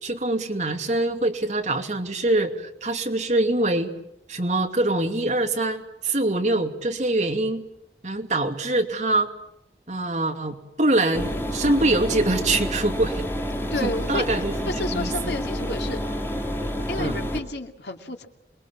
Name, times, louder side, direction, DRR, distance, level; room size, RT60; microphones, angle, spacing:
voice 1, 0.0-3.9 4.3-7.6 8.0-9.3 9.9-13.2 13.8-14.5 14.9-15.3 17.0-17.2, right 2 dB, 40° right, 4 dB, 2.7 m, -24 dB
sound 1, 11.1-17.4, equal, 15° left, 2.8 m, -29 dB
voice 2, 13.7-14.3 14.7-16.0 16.9-18.3, left 2 dB, 75° left, 5 dB, 2.5 m, -31 dB
28.0 x 22.0 x 7.4 m, 0.79 s
head